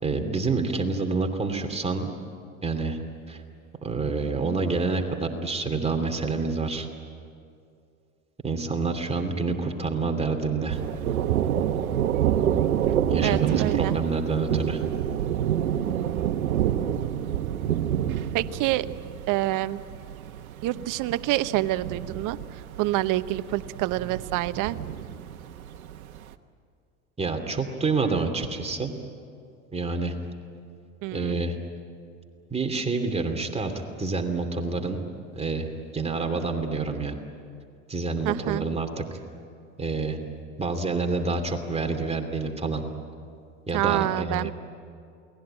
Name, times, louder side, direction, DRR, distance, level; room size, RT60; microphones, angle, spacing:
voice 1, 0.0-2.1 2.6-3.0 3.3-3.4 3.8-6.9 8.4-10.8 13.1-14.8 27.2-28.9 29.7-30.1 31.1-31.6 32.5-33.7 34.0-35.1 35.3-35.7 35.9-37.2 37.9-39.2 39.8-40.2 40.6-42.8 43.7-44.5, right 3 dB, 15° right, 4 dB, 2.9 m, -27 dB
Thunder, 10.7-26.2, right 10 dB, 80° right, 1.2 m, -28 dB
voice 2, 13.2-13.9 18.3-18.9 19.3-19.8 20.6-22.4 22.8-24.8 31.0-31.4 38.2-38.6 43.7-44.5, right 16 dB, 50° right, 14 dB, 1.0 m, -27 dB
28.5 x 20.0 x 9.0 m, 2.4 s
hypercardioid pair, 85°, 42 cm